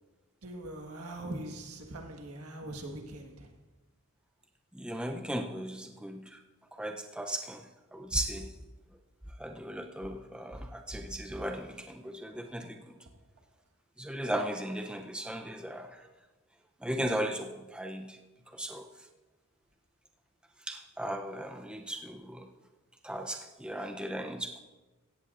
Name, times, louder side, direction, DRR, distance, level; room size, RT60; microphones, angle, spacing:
voice 1, 0.4-3.5, right 1 dB, 80° right, 1.6 m, -42 dB
voice 2, 4.7-6.4 6.7-7.7 7.9-8.5 9.4-12.9 14.0-16.0 16.8-18.2 18.5-18.9 20.7-22.5 23.0-24.6, right 1 dB, 5° right, 0.5 m, -36 dB
16.5 x 14.5 x 2.5 m
head